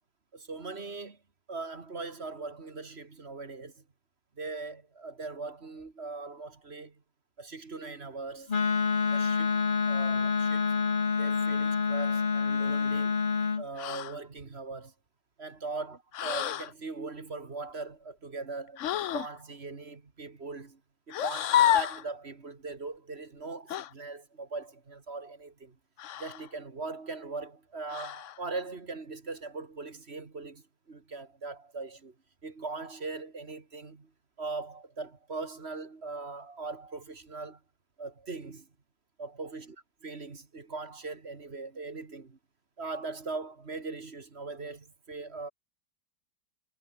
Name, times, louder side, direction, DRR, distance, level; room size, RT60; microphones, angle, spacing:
voice 1, 0.3-1.2 1.5-3.8 4.4-7.0 7.4-8.5 9.0-10.7 11.2-13.2 13.6-14.9 15.4-20.8 21.1-25.8 26.2-32.1 32.4-34.1 34.4-37.6 38.0-38.7 39.2-39.8 40.0-42.4 42.8-45.5, right 3 dB, 35° right, 2.1 m, -40 dB
Wind instrument woodwind instrument, 8.5-13.6, left 5 dB, 30° left, 1.3 m, -27 dB
sound 1, 13.8-14.2 16.1-16.7 18.8-19.3 21.1-22.1 23.7-23.9 26.0-26.5 27.9-28.4, left 11 dB, 60° left, 0.8 m, -29 dB
omnidirectional pair, 1.9 m